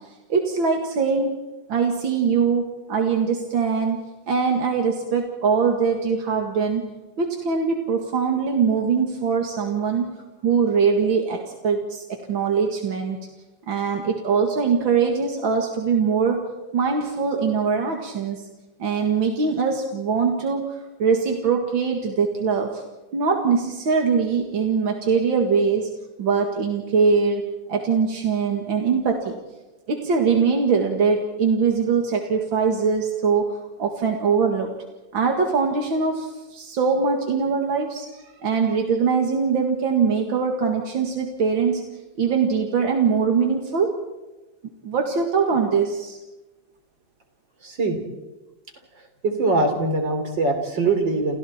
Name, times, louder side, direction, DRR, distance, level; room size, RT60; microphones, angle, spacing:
voice 1, 0.3-1.4 1.7-6.8 7.2-10.1 10.4-13.2 13.7-16.4 16.7-18.4 18.8-20.7 21.0-22.8 23.1-25.9 26.2-29.4 29.9-33.5 33.8-34.7 35.1-38.1 38.4-41.8 42.2-44.0 44.8-46.2, right 5 dB, 90° right, 2 dB, 2.7 m, -22 dB
voice 2, 47.6-48.0 49.2-51.4, right 3 dB, 70° right, 5 dB, 4.3 m, -22 dB
29.5 x 29.5 x 4.4 m, 1.1 s
omnidirectional pair, 2.1 m